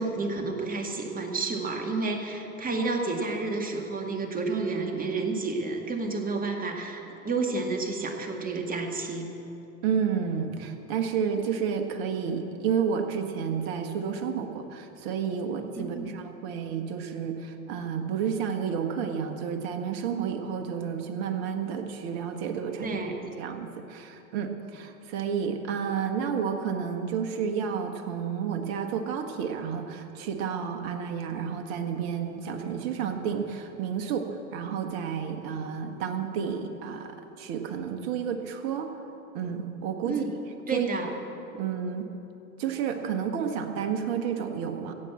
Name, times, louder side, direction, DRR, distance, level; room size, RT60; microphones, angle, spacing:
voice 1, 0.0-9.3 15.8-16.2 22.8-23.3 40.0-40.3 40.7-41.1, right 3 dB, 20° right, 2 dB, 2.0 m, -30 dB
voice 2, 9.8-23.0 23.4-37.1 37.4-38.9 39.3-40.2 40.7-40.9 41.6-42.1 42.6-44.9, right 7 dB, 50° right, 6 dB, 1.6 m, -31 dB
16.0 x 7.8 x 8.3 m, 3.0 s
hypercardioid pair, 90°, 43 cm